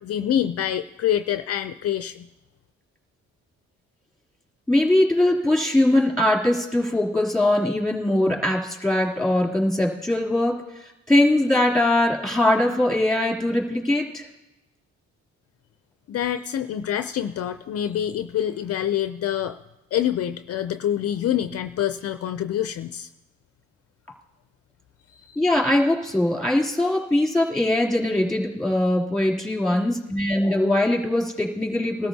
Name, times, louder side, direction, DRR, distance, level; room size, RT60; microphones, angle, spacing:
voice 1, 0.0-2.3 16.1-19.6 19.9-23.1 25.1-25.4, left 10 dB, 50° left, 9 dB, 0.5 m, -26 dB
voice 2, 4.7-14.3 25.4-32.1, left 1 dB, ahead, -2 dB, 3.0 m, -21 dB
21.0 x 13.0 x 2.8 m, 1.0 s
cardioid pair, 90°, 30 cm